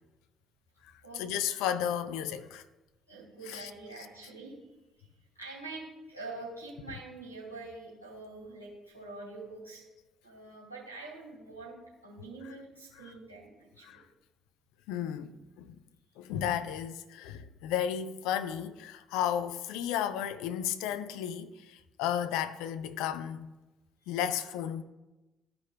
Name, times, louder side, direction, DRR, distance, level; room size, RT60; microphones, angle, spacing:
voice 1, 1.2-2.6 3.5-3.7 4.0-4.1 13.8-14.0 14.9-15.8 16.2-23.6 24.1-24.8, left 9 dB, 65° left, 0.4 m, -33 dB
voice 2, 3.1-4.5 5.3-9.8 10.2-11.8 12.0-14.0, right 3 dB, 85° right, 2.6 m, -45 dB
14.0 x 5.2 x 2.3 m
figure-of-eight pair, 45°, 0 cm